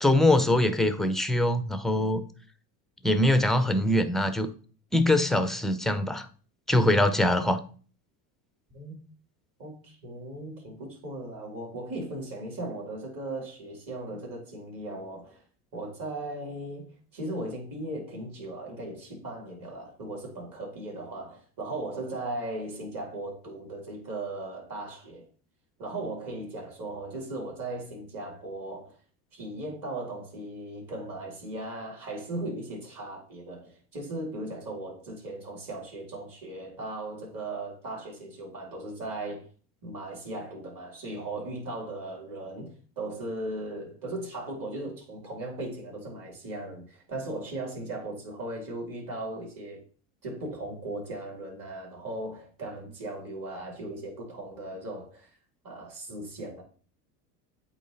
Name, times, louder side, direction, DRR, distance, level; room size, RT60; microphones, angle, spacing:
voice 1, 0.0-2.2 3.0-4.5 4.9-6.3 6.7-7.6, left 1 dB, ahead, 0.4 m, -23 dB
voice 2, 9.6-15.4 15.7-25.3 25.8-29.0 29.3-39.5 39.8-49.8 50.2-55.3 55.6-56.6, right 2 dB, 40° right, 3.6 m, -37 dB
8.2 x 3.1 x 4.0 m
hypercardioid pair, 85°, 48 cm